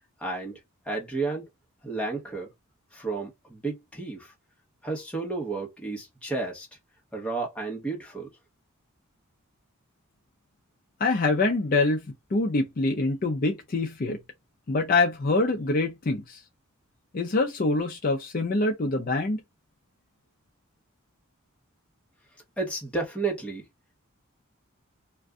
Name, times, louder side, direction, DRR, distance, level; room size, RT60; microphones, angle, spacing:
voice 1, 0.2-0.6 0.8-1.5 1.8-2.5 2.9-4.3 4.8-6.7 7.1-8.3 22.6-23.6, right 3 dB, 5° left, 1.0 m, -32 dB
voice 2, 11.0-12.1 12.3-14.2 14.7-16.4 17.1-19.4, left 3 dB, 40° left, 0.4 m, -25 dB
2.5 x 2.2 x 3.5 m
head